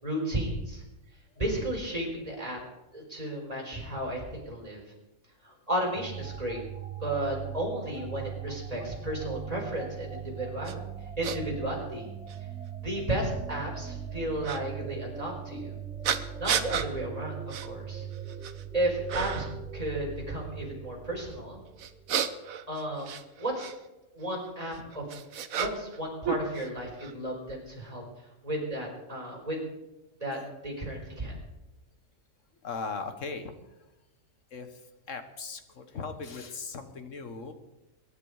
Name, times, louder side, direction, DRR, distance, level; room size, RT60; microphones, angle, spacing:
voice 1, 0.0-0.8 1.4-2.6 2.9-4.8 5.4-6.6 7.0-10.8 11.2-12.1 12.8-15.7 16.4-18.1 18.7-21.6 22.7-23.1 23.4-23.7 24.1-25.0 25.5-28.0 28.4-29.6 30.2-31.3, right 1 dB, 25° right, -2 dB, 4.7 m, -33 dB
sound 1, 6.0-22.3, right 8 dB, 10° right, 0.5 m, -40 dB
sound 2, 10.6-10.7 11.2-11.4 12.3-12.4 14.4-14.6 16.0-16.9 17.5-17.7 18.1-18.6 19.1-19.6 21.8-23.7 24.7-26.0 26.2-27.1, right 8 dB, 75° right, 1.3 m, -32 dB
voice 2, 32.6-33.5 34.5-34.7 35.1-37.5, left 4 dB, 60° left, 9 dB, 1.7 m, -38 dB
23.0 x 10.5 x 4.9 m, 0.99 s
omnidirectional pair, 1.5 m